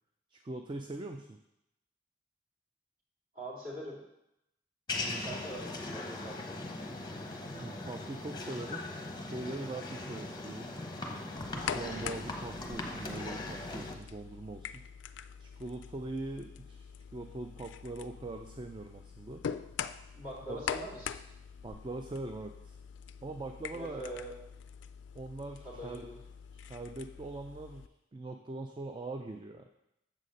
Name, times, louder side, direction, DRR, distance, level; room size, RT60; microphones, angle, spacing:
voice 1, 0.3-1.4 4.9-5.3 7.5-8.9 9.1-10.7 11.5-14.8 15.4-19.4 20.5-20.6 21.6-22.8 23.2-24.1 25.1-26.1 26.5-29.7, right 2 dB, 25° right, 5 dB, 0.3 m, -42 dB
voice 2, 3.3-4.0 5.2-6.6 20.1-21.1 23.7-24.3 25.6-26.1, equal, 45° right, -6 dB, 2.6 m, -43 dB
sound 1, 4.9-13.9, left 2 dB, 25° left, 0.7 m, -40 dB
sound 2, 11.4-27.9, left 7 dB, 80° left, 0.3 m, -44 dB
7.3 x 4.1 x 6.3 m, 0.87 s
head